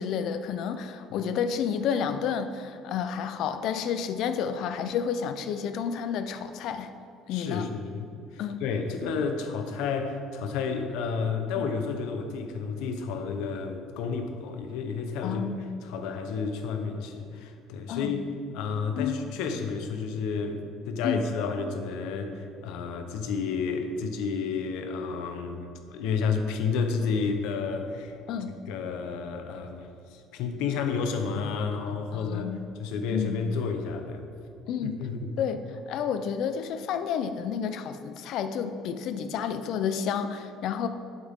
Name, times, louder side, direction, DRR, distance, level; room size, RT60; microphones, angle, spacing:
voice 1, 0.0-6.9 7.3-7.7 8.4-8.6 11.6-11.7 15.2-15.6 17.9-18.2 19.0-19.2 21.0-21.2 28.3-28.5 32.1-32.7 33.1-33.4 34.7-35.0 35.4-40.9, left 7 dB, 55° left, 9 dB, 0.6 m, -30 dB
voice 2, 7.3-15.5 15.8-18.2 18.5-28.2 28.7-32.5 32.8-34.3 34.8-35.4, left 5 dB, 80° left, 6 dB, 1.0 m, -31 dB
11.5 x 8.7 x 3.7 m, 2.5 s
cardioid pair, 170°, 0 cm